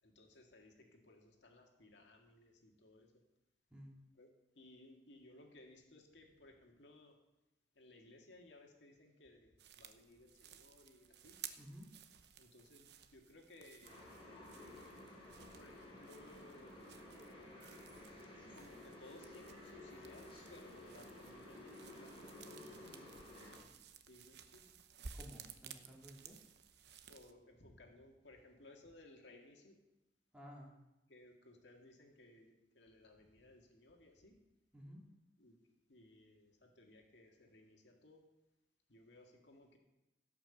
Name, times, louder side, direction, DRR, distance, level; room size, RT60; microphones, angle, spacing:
voice 1, 0.0-3.1 4.1-4.3 4.6-7.2 7.8-11.4 12.4-14.0 15.5-17.0 18.5-23.1 24.1-24.8 27.1-29.8 31.1-34.4 35.4-35.6 35.9-38.3 38.9-39.8, left 2 dB, 80° left, 2 dB, 2.0 m, -61 dB
sound 1, 9.6-27.3, right 7 dB, 65° right, 0.8 m, -57 dB
voice 2, 11.6-11.9 25.1-26.4 30.3-30.7 34.7-35.0, equal, 5° right, -2 dB, 2.8 m, -54 dB
sound 2, 13.8-23.6, left 1 dB, 30° left, 4.6 m, -54 dB
16.0 x 5.9 x 7.0 m, 0.97 s
head